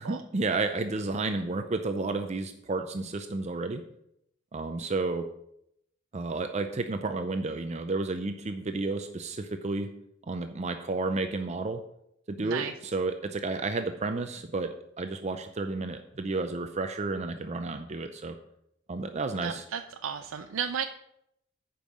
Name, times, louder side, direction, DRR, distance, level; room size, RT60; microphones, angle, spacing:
voice 1, 0.0-3.8 4.5-5.3 6.1-9.9 10.3-11.8 12.3-14.7 15.0-18.4 18.9-19.6, right 3 dB, 35° right, 7 dB, 0.5 m, -31 dB
voice 2, 12.4-12.7 19.4-20.8, right 7 dB, 85° right, 7 dB, 0.5 m, -34 dB
8.8 x 5.4 x 6.3 m, 0.77 s
head